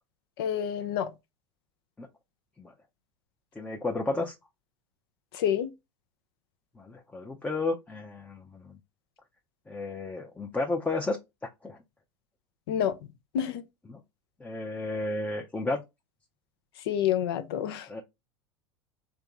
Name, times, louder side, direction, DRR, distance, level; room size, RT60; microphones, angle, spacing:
voice 1, 0.4-1.1 5.3-5.7 12.7-12.9 13.3-13.6 16.9-17.9, left 10 dB, 65° left, 0.6 m, -28 dB
voice 2, 3.6-4.3 6.8-8.8 9.7-11.2 11.6-11.8 13.9-14.0 14.4-15.8 17.9-18.0, left 2 dB, 10° left, 0.6 m, -32 dB
3.5 x 2.9 x 3.6 m
figure-of-eight pair, 80°, 14 cm